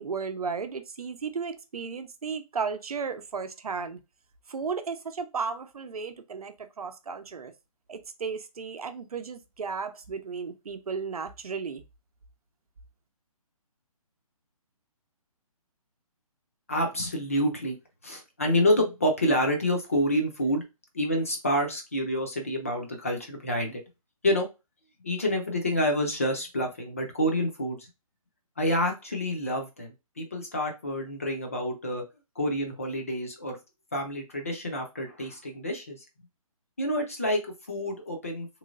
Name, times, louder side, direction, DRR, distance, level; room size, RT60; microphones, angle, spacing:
voice 1, 0.0-4.0 4.5-7.5 7.9-11.8, right 5 dB, 85° right, 0.7 m, -34 dB
voice 2, 16.7-17.8 18.0-20.6 20.9-23.8 24.2-24.5 25.0-27.9 28.6-32.0 32.4-33.6 33.9-36.0 36.8-38.5, equal, 25° left, 0.5 m, -28 dB
3.1 x 3.0 x 2.4 m
hypercardioid pair, 175°, 19 cm